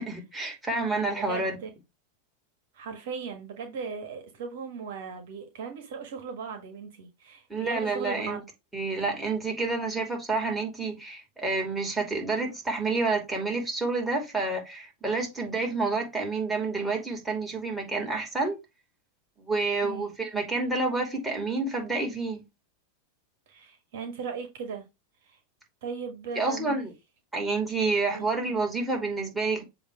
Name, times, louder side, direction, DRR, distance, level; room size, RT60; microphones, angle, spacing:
voice 1, 0.0-1.6 7.5-8.4 8.7-18.6 19.5-22.4 26.3-26.9 27.3-29.6, right 3 dB, 10° right, 2.7 m, -29 dB
voice 2, 1.2-1.7 2.7-8.4 19.8-20.1 23.5-24.8 25.2-25.4 25.8-26.8 28.1-28.3, right 6 dB, 65° right, 1.4 m, -37 dB
7.2 x 2.8 x 4.8 m
hypercardioid pair, 95°, 0 cm